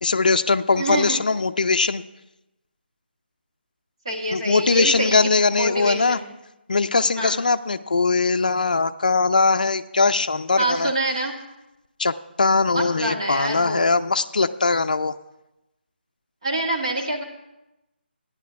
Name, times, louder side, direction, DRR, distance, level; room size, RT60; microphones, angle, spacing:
voice 1, 0.0-2.0 4.3-6.2 6.7-10.9 12.0-15.2, left 4 dB, 45° left, 10 dB, 0.5 m, -21 dB
voice 2, 0.7-1.2 4.1-6.3 7.2-7.4 10.6-11.4 12.7-13.9 16.4-17.2, right 2 dB, 30° right, 0 dB, 1.8 m, -26 dB
14.0 x 10.5 x 4.6 m, 0.95 s
figure-of-eight pair, 180°, 6 cm